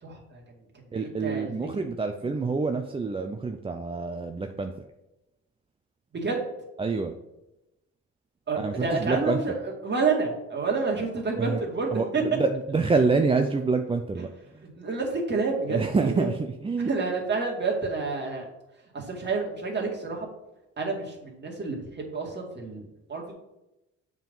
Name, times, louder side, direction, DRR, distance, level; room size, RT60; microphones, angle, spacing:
voice 1, 0.0-0.4 1.0-1.8 2.2-2.4 6.1-6.4 8.5-12.2 14.2-14.3 14.7-16.3 16.8-18.5 18.9-20.3 20.8-23.3, right 4 dB, 35° right, -1 dB, 2.1 m, -29 dB
voice 2, 0.9-4.7 6.8-7.1 8.6-9.4 11.4-11.6 11.9-14.3 14.5-14.6 15.7-16.3 16.6-16.9, right 4 dB, 20° right, 5 dB, 0.5 m, -26 dB
7.2 x 3.8 x 5.4 m, 0.92 s
cardioid pair, 90°, 30 cm